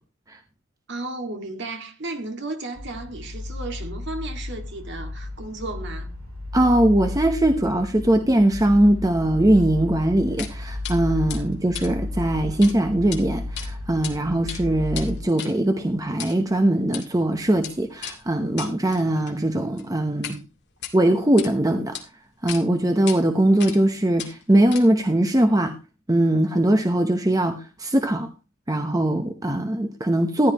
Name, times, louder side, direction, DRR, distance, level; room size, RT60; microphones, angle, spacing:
voice 1, 0.9-6.1, right 2 dB, 55° right, 2.0 m, -34 dB
sound 1, 2.7-15.2, left 2 dB, 70° right, 2.5 m, -33 dB
voice 2, 6.5-20.4 20.9-22.0 22.4-25.7 26.1-28.3 28.7-30.5, right 1 dB, 15° right, 0.8 m, -21 dB
sound 2, 10.4-10.5 10.8-11.0 11.3-12.7 13.0-13.2 13.6-14.1 14.4-20.4 20.7-21.5 21.9-22.0 22.5-22.6 23.1-23.2 23.6-23.9 24.2-25.1, left 8 dB, 50° left, 2.2 m, -37 dB
14.5 x 11.0 x 3.0 m
head